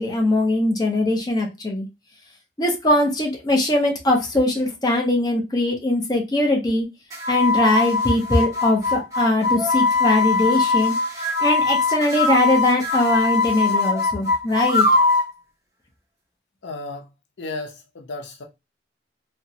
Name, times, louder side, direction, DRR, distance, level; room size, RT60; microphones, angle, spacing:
voice 1, 0.0-1.9 2.6-6.9 7.3-10.9 11.4-14.9, left 1 dB, 20° left, 0.6 m, -21 dB
sound 1, 7.1-15.3, left 3 dB, 20° right, 0.7 m, -21 dB
voice 2, 16.6-17.1 17.4-18.4, left 2 dB, 80° left, 0.6 m, -33 dB
2.9 x 2.2 x 2.7 m
head